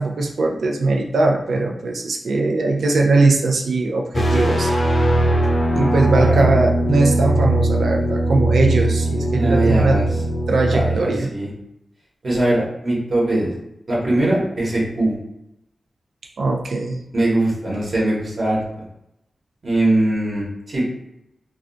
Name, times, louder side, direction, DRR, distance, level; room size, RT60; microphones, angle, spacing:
voice 1, 0.0-4.7 5.7-10.0 10.5-11.3 16.4-17.0, right 3 dB, 80° right, 0 dB, 0.4 m, -20 dB
sound 1, 4.1-11.0, right 1 dB, 45° left, 0.4 m, -19 dB
voice 2, 6.2-6.6 9.3-10.1 10.7-11.5 12.2-13.5 13.9-15.1 17.1-18.6 19.6-20.9, right 1 dB, 45° right, -5 dB, 0.9 m, -21 dB
2.3 x 2.2 x 3.7 m, 0.85 s
wide cardioid pair, 135°, 0 cm